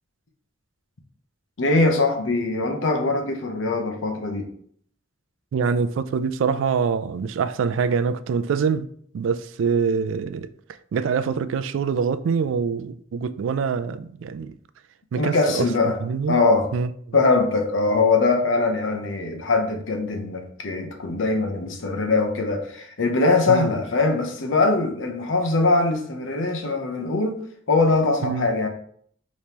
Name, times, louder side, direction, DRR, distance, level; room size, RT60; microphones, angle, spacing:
voice 1, 1.6-4.5 15.1-16.0 16.3-16.7 17.1-28.7, left 3 dB, 90° left, 0.8 m, -22 dB
voice 2, 5.5-8.9 9.1-10.5 10.9-14.5 15.1-15.7 16.0-16.4 16.7-16.9 23.5-23.7 28.2-28.5, right 6 dB, 85° right, 0.3 m, -24 dB
5.1 x 3.1 x 2.8 m
head